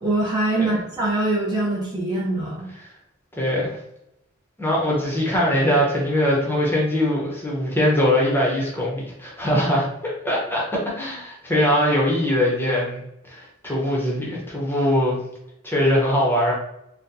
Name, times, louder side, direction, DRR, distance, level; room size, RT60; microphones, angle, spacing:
voice 1, 0.0-2.7, right 2 dB, 20° right, -5 dB, 0.7 m, -23 dB
voice 2, 3.4-3.8 4.6-10.6 10.9-15.2 15.6-16.5, left 1 dB, 10° left, -4 dB, 0.8 m, -22 dB
4.2 x 2.2 x 2.6 m, 0.81 s
head